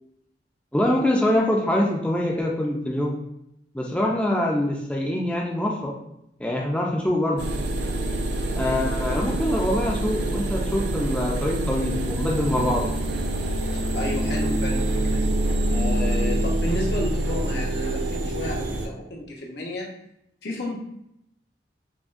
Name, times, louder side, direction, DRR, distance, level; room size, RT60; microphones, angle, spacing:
voice 1, 0.7-3.2 3.7-6.0 6.4-7.5 8.5-12.9, left 1 dB, 5° left, -2 dB, 0.4 m, -24 dB
sound 1, 7.4-18.9, right 1 dB, 80° right, 0.5 m, -26 dB
voice 2, 13.7-15.3 15.7-19.9 20.4-20.8, left 1 dB, 65° left, -1 dB, 0.9 m, -32 dB
5.8 x 2.1 x 2.5 m, 0.79 s
head